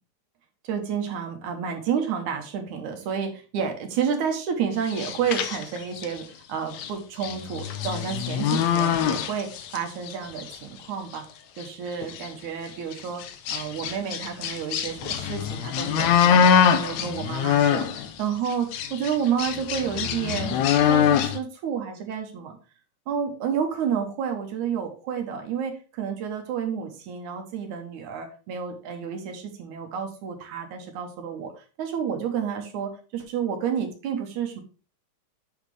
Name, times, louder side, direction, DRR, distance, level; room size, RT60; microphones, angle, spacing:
voice 1, 0.6-11.2 11.6-22.6 23.1-34.6, right 7 dB, 70° right, 4 dB, 2.2 m, -30 dB
sound 1, 4.9-6.2 6.7-6.9 7.2-9.8 10.1-10.6 11.1-11.2 11.6-11.7 12.0-12.3 12.9-18.1 18.5-21.4, left 8 dB, 75° left, 1.7 m, -24 dB
8.3 x 5.7 x 3.3 m, 0.36 s
omnidirectional pair, 4.0 m